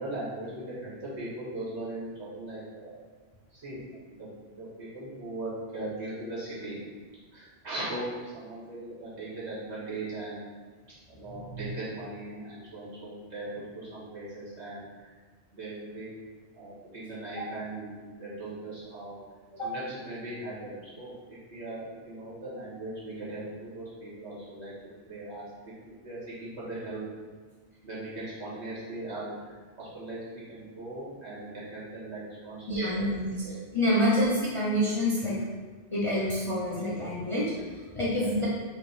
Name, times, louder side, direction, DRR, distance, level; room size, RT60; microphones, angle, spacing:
voice 1, 0.0-3.0 3.5-3.8 4.1-4.3 4.6-6.8 7.3-10.5 11.1-15.1 15.5-16.1 16.5-19.2 19.6-24.7 25.1-25.4 26.0-27.1 27.8-33.1 33.4-33.6 34.0-34.1 34.7-34.8, right 2 dB, 85° right, -9 dB, 1.9 m, -39 dB
voice 2, 32.7-33.3 33.7-35.4 35.9-37.5 37.9-38.5, equal, 35° left, -7 dB, 0.6 m, -27 dB
4.5 x 2.6 x 4.1 m, 1.5 s
omnidirectional pair, 1.1 m